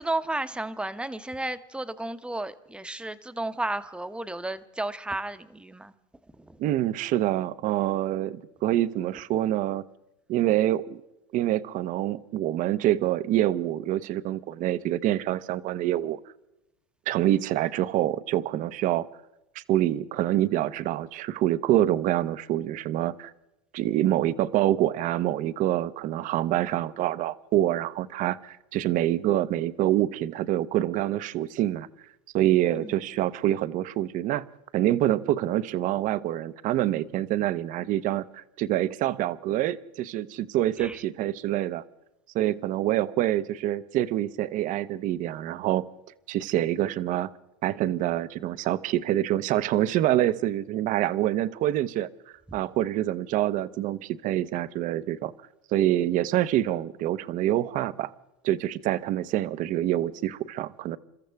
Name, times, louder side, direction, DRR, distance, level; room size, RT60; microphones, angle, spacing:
voice 1, 0.0-5.9 6.5-6.6 32.8-32.9 40.8-41.0, right 2 dB, 5° right, 11 dB, 0.9 m, -33 dB
voice 2, 6.6-9.8 10.3-11.0 11.3-16.2 17.1-19.1 19.6-23.3 23.7-31.9 32.3-34.5 34.7-41.8 42.3-45.8 46.3-47.3 47.6-52.1 52.5-55.3 55.7-58.1 58.4-61.0, right 13 dB, 50° right, 15 dB, 0.8 m, -26 dB
29.0 x 14.0 x 3.5 m, 0.92 s
supercardioid pair, 105°, 17 cm